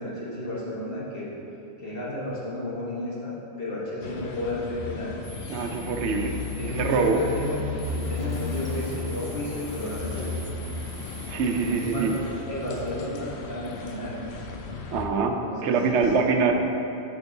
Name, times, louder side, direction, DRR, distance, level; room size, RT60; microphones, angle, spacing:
voice 1, 0.0-1.3 1.8-5.2 6.6-7.6 7.9-10.4 11.5-12.2 12.5-14.2 15.4-16.5, left 1 dB, 55° left, -6 dB, 1.4 m, -33 dB
sound 1, 4.0-15.1, left 3 dB, 75° left, 0.9 m, -35 dB
sound 2, 5.2-12.2, left 1 dB, 35° left, 0.3 m, -44 dB
voice 2, 5.5-6.4 6.6-7.2 11.3-12.1 14.9-16.7, right 4 dB, 85° right, 4 dB, 0.9 m, -24 dB
7.9 x 5.3 x 2.7 m, 2.9 s
omnidirectional pair, 1.1 m